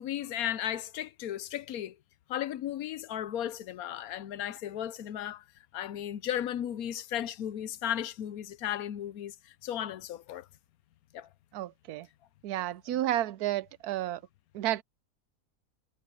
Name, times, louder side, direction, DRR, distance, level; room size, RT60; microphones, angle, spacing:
voice 1, 0.0-2.0 2.3-5.4 5.7-9.3 9.6-10.5 11.1-11.3, left 11 dB, 75° left, 1.1 m, -35 dB
voice 2, 11.5-12.1 12.4-14.2 14.5-14.8, right 13 dB, 85° right, 1.1 m, -31 dB
omnidirectional pair, 1.6 m